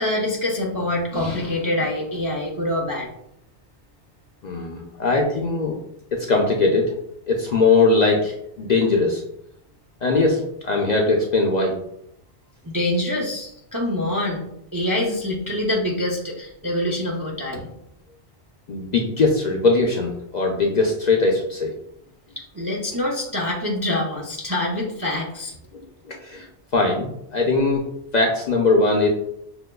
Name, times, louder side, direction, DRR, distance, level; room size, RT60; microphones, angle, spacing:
voice 1, 0.0-3.1 12.6-14.4 14.7-17.7 22.5-25.5, left 1 dB, 30° right, -2 dB, 0.4 m, -25 dB
voice 2, 4.4-5.8 6.1-6.9 7.3-9.2 10.0-11.7 18.7-21.7 25.7-25.8 26.1-26.5 26.7-27.8 28.1-29.1, left 3 dB, 55° left, 0 dB, 0.5 m, -20 dB
6.0 x 2.2 x 2.2 m, 0.75 s
omnidirectional pair, 1.1 m